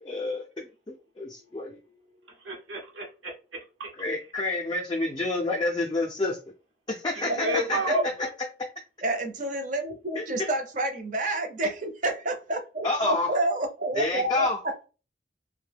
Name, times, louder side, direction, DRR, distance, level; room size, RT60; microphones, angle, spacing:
voice 1, 0.0-1.8 4.0-6.4 6.9-7.8 10.2-10.3 12.8-13.3 14.0-14.6, left 2 dB, 20° left, 0.4 m, -29 dB
voice 2, 1.8-3.9 7.1-8.3, right 1 dB, 75° right, 0.8 m, -34 dB
voice 3, 7.2-8.1 9.0-14.5, right 1 dB, 40° right, 0.6 m, -29 dB
2.6 x 2.1 x 3.3 m
head